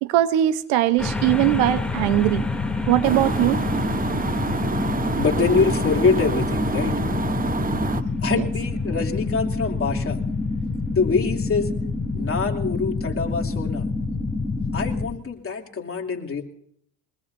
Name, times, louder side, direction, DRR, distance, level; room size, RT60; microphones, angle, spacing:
voice 1, 0.0-2.4 2.9-3.6 8.3-8.4 12.1-12.2, right 13 dB, 80° right, 14 dB, 1.1 m, -20 dB
sound 1, 1.0-15.1, left 3 dB, ahead, 2.8 m, -27 dB
sound 2, 3.0-8.0, right 4 dB, 20° right, 1.0 m, -27 dB
voice 2, 5.2-7.0 8.2-10.2 10.9-11.7 12.2-13.9 14.7-16.4, left 5 dB, 30° left, 1 dB, 3.0 m, -24 dB
25.0 x 20.0 x 2.7 m, 0.66 s
supercardioid pair, 95°, 47 cm